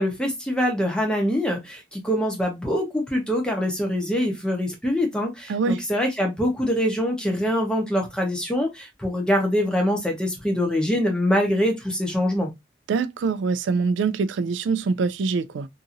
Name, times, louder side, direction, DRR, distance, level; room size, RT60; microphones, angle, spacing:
voice 1, 0.0-12.5, equal, 5° left, 0.8 m, -24 dB
voice 2, 5.5-5.8 12.9-15.7, right 4 dB, 85° right, 0.3 m, -24 dB
2.8 x 2.6 x 2.5 m
head